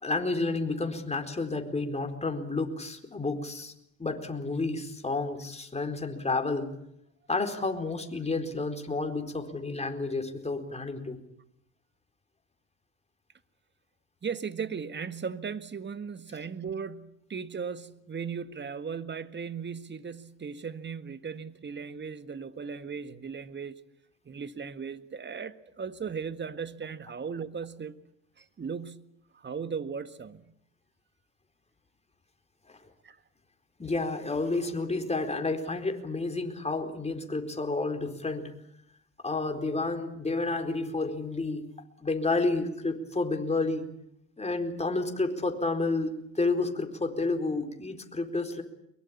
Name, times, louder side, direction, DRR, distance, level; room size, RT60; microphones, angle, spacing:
voice 1, 0.0-3.7 4.0-6.8 7.3-11.2 32.7-32.8 33.8-38.5 39.2-41.6 42.0-43.9 44.4-48.6, left 3 dB, 15° left, 4.3 m, -30 dB
voice 2, 14.2-23.8 24.3-27.9 28.4-29.1 29.3-30.4 33.0-33.2, right 6 dB, 25° right, 1.8 m, -37 dB
23.0 x 22.5 x 8.7 m
hypercardioid pair, 70°, 40 cm